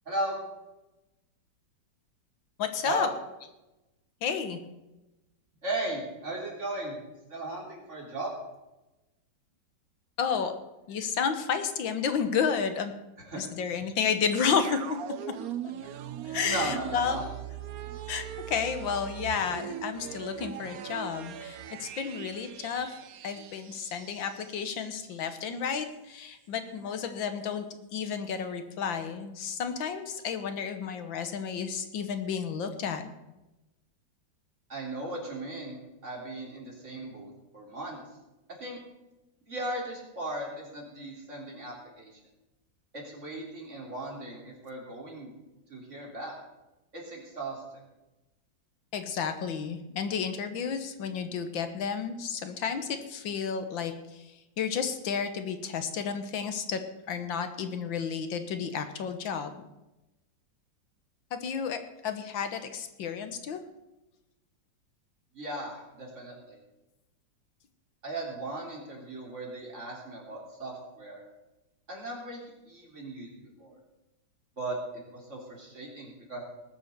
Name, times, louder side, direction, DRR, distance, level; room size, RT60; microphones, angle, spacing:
voice 1, 0.1-0.4 2.8-3.1 5.6-7.0 7.3-8.3 13.2-13.4 16.4-17.3 34.7-38.0 38.6-38.8 39.5-42.2 42.9-45.3 45.7-46.3 46.9-47.8 65.3-66.6 68.0-71.2 71.9-73.8 74.6-74.8 75.1-76.4, right 1 dB, 35° right, -2 dB, 3.9 m, -37 dB
voice 2, 2.6-3.1 4.2-4.6 10.2-10.5 10.9-12.9 13.3-15.0 16.2-17.2 18.1-22.9 23.2-27.7 27.9-33.0 48.9-54.2 54.6-56.8 57.1-59.5 61.3-63.6, left 6 dB, 80° left, 9 dB, 1.9 m, -31 dB
sound 1, 14.3-25.1 25.4-25.5, right 10 dB, 65° right, 1.0 m, -41 dB
19.5 x 7.0 x 6.7 m, 1.0 s
omnidirectional pair, 2.1 m